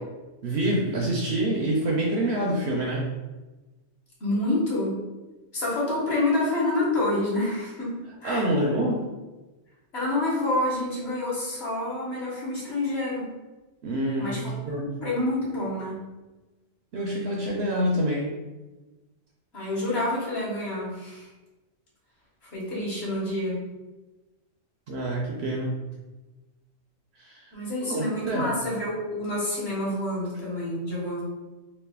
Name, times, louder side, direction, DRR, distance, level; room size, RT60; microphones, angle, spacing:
voice 1, 0.4-3.1 8.2-9.0 13.8-15.0 16.9-18.3 24.9-25.7 27.2-27.4 27.8-28.6, right 1 dB, 65° right, -1 dB, 0.7 m, -26 dB
voice 2, 4.2-5.0 5.5-7.9 8.2-8.5 9.9-13.3 14.2-16.0 19.5-21.3 22.5-23.6 27.5-31.2, left 1 dB, 55° left, -6 dB, 1.4 m, -28 dB
3.1 x 2.4 x 3.5 m, 1.1 s
omnidirectional pair, 1.3 m